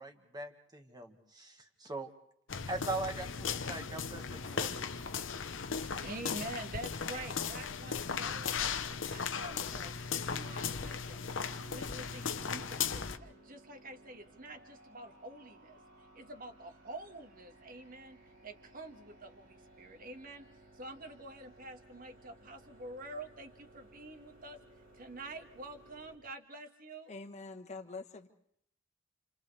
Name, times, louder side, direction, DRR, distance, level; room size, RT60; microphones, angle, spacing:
voice 1, 0.0-2.1 2.7-4.7, right 2 dB, 20° right, 5 dB, 1.6 m, -41 dB
sound 1, 2.5-13.2, left 6 dB, 90° left, 0.9 m, -37 dB
voice 2, 6.0-8.7 9.0-9.9 10.3-11.2 11.7-15.8 16.1-20.5 20.7-24.6 24.9-27.1, right 2 dB, 50° right, 6 dB, 1.7 m, -47 dB
sound 2, 11.4-26.2, right 1 dB, 80° right, 4.3 m, -59 dB
voice 3, 27.1-28.3, left 3 dB, 35° left, 7 dB, 1.3 m, -45 dB
30.0 x 27.0 x 3.3 m, 0.70 s
head